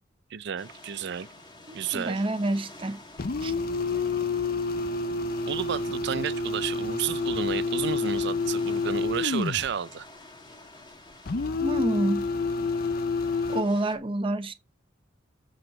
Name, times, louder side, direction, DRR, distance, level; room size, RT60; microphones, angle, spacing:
voice 1, 0.3-1.3 1.7-2.2 5.5-10.1, right 7 dB, 65° right, 0.5 m, -31 dB
sound 1, 0.6-13.9, left 2 dB, 25° left, 2.0 m, -50 dB
voice 2, 1.9-3.0 3.4-3.5 11.6-12.3 13.5-14.5, right 1 dB, 30° right, 0.8 m, -27 dB
sound 2, 3.2-9.7 11.3-13.6, left 3 dB, 50° left, 0.7 m, -28 dB
7.8 x 6.4 x 6.1 m
head